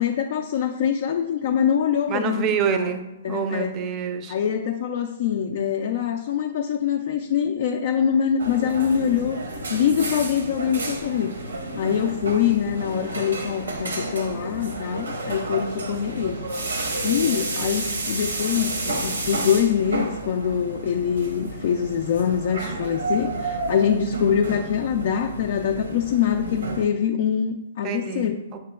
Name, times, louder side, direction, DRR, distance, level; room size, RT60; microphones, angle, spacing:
voice 1, 0.0-2.4 2.7-3.0 3.2-3.7 4.3-9.4 9.7-11.3 11.7-16.4 17.0-28.4, left 8 dB, 55° left, 4 dB, 0.3 m, -24 dB
voice 2, 2.1-4.4 27.8-28.6, right 7 dB, 30° right, 7 dB, 0.5 m, -27 dB
sound 1, 8.4-26.9, right 2 dB, 85° right, 0.7 m, -31 dB
6.6 x 2.9 x 2.3 m, 0.97 s
hypercardioid pair, 130°, 0 cm